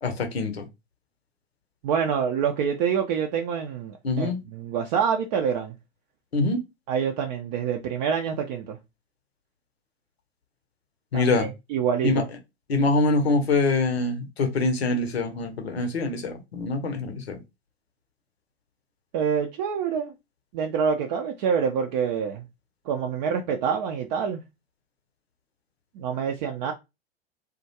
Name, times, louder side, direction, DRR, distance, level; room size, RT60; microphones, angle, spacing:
voice 1, 0.0-0.7 4.0-4.4 6.3-6.6 11.1-11.5 12.0-12.2 12.7-17.4, left 3 dB, 80° left, 0.7 m, -24 dB
voice 2, 1.8-5.7 6.9-8.8 11.1-12.3 19.1-20.1 20.5-22.5 22.9-24.4 26.0-26.7, right 7 dB, 45° right, 0.4 m, -26 dB
2.3 x 2.1 x 2.8 m
figure-of-eight pair, 85°, 31 cm